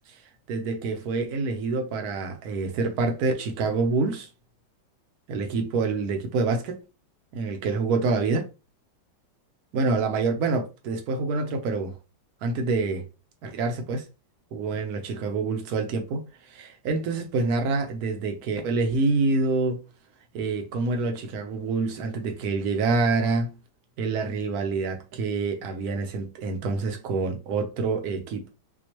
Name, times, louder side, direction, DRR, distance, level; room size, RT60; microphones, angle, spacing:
voice 1, 0.5-4.3 5.3-6.8 7.3-8.5 9.7-11.9 12.4-13.0 13.4-14.0 14.5-19.8 20.3-23.5 24.0-28.5, right 3 dB, 60° right, 1.1 m, -26 dB
4.3 x 2.4 x 2.9 m
omnidirectional pair, 2.1 m